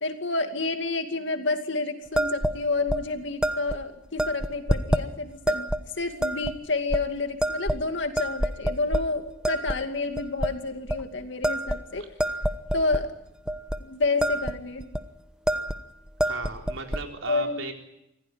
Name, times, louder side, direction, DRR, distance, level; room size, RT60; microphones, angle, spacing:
voice 1, 0.0-5.7 6.0-12.1 12.7-13.1 13.8-14.9 17.3-17.6, left 3 dB, 65° left, 6 dB, 2.4 m, -29 dB
sound 1, 2.2-2.6 2.9-3.0 3.4-3.8 4.2-5.0 5.5-5.8 6.2-6.5 6.9-7.0 7.4-7.9 8.2-9.1 9.4-9.8 10.2-10.5 10.9-11.0 11.4-13.0 13.5-13.8 14.0-14.5 14.8-15.0 15.5-15.8 16.1-17.0, right 1 dB, 5° right, 1.0 m, -27 dB
voice 2, 16.2-17.7, right 3 dB, 90° right, 2 dB, 4.2 m, -36 dB
25.0 x 16.0 x 9.5 m, 0.85 s
head